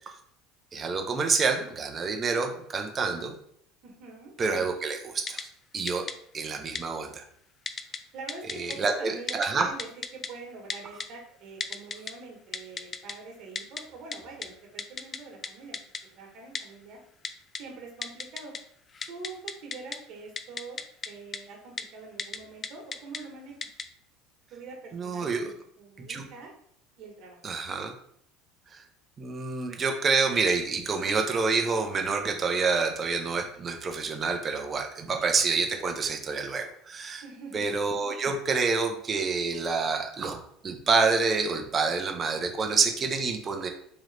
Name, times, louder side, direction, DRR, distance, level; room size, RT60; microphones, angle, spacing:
voice 1, 0.7-3.3 4.4-5.5 5.7-6.1 6.3-7.2 8.6-9.7 24.9-25.5 26.1-26.2 27.4-27.9 28.7-28.8 29.2-37.2 37.5-43.7, right 4 dB, 25° right, 4 dB, 0.6 m, -27 dB
voice 2, 3.8-4.3 8.1-15.8 16.1-17.0 17.6-18.5 19.1-23.5 24.5-26.5 27.0-27.4 37.2-37.8, right 3 dB, 55° right, 0 dB, 1.3 m, -44 dB
Typing, 5.3-5.4 5.9-6.1 6.8-6.9 7.7-8.0 8.3-8.8 9.3-9.5 9.8-10.3 10.7-11.1 11.6-12.1 12.5-13.1 13.6-13.8 14.1-14.2 14.4-14.5 14.8-15.2 15.4-15.5 15.7-16.0 16.5-16.6 17.2-17.6 18.0-18.6 18.9-20.0 20.4-21.1 21.3-21.4 21.8-21.9 22.2-22.4 22.6-23.2 23.6-23.8, left 5 dB, 30° left, 0.3 m, -33 dB
3.8 x 3.0 x 3.3 m, 0.67 s
supercardioid pair, 125°, 0 cm